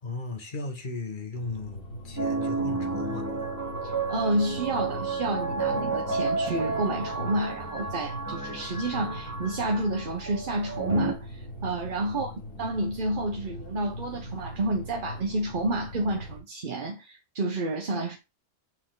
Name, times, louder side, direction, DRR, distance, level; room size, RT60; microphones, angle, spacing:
voice 1, 0.0-3.5 12.1-12.2, left 3 dB, 35° left, 1.4 m, -37 dB
sound 1, 1.3-16.4, equal, 60° left, 2.5 m, -41 dB
sound 2, 2.2-11.1, right 3 dB, 15° right, 1.2 m, -31 dB
voice 2, 3.8-12.3 12.6-18.2, right 1 dB, 40° right, 0.9 m, -30 dB
sound 3, 6.4-10.8, right 9 dB, 85° right, 1.3 m, -46 dB
7.4 x 4.4 x 3.9 m
omnidirectional pair, 1.5 m